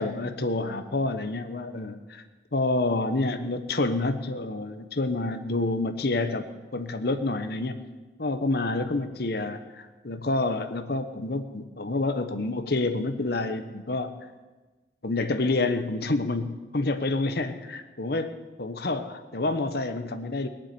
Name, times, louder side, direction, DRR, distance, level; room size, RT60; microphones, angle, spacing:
voice 1, 0.0-2.2 2.5-6.5 6.7-7.8 8.2-9.6 10.0-14.2 15.0-18.3 18.6-20.5, left 2 dB, 55° left, 8 dB, 1.0 m, -28 dB
19.0 x 7.4 x 9.0 m, 1.2 s
head